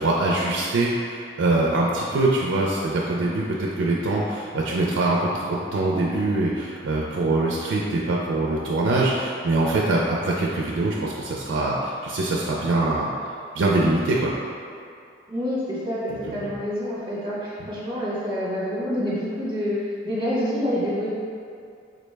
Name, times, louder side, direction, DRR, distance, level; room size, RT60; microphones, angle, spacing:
voice 1, 0.0-13.1 13.5-14.3 16.3-16.5, right 2 dB, 80° right, -3 dB, 0.3 m, -23 dB
voice 2, 15.3-21.1, equal, 25° right, -7 dB, 0.9 m, -27 dB
3.9 x 2.1 x 3.2 m, 2.4 s
head